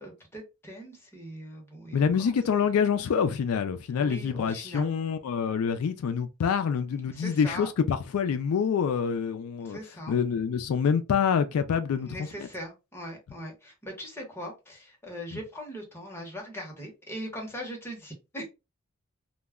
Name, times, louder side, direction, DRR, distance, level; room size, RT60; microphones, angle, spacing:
voice 1, 0.0-2.3 3.9-4.9 7.1-7.7 9.6-10.2 12.1-18.5, equal, 10° left, 0.8 m, -40 dB
voice 2, 1.9-9.8 10.1-12.3 15.3-15.4, left 6 dB, 75° left, 0.3 m, -26 dB
2.2 x 2.1 x 3.4 m
head